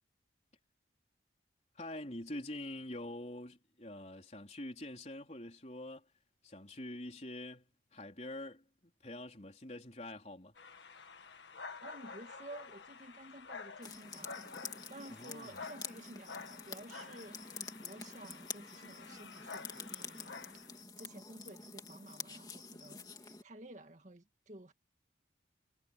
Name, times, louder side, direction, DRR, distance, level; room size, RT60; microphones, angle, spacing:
voice 1, 1.7-6.1 6.4-10.5 15.1-15.6, left 1 dB, 35° left, 4.2 m, -45 dB
sound 1, 10.6-20.8, left 4 dB, 75° left, 1.8 m, -50 dB
voice 2, 11.8-14.4 14.9-20.4 21.0-24.7, right 1 dB, 40° right, 2.1 m, -53 dB
sound 2, 13.8-23.4, left 5 dB, 20° left, 2.7 m, -48 dB
head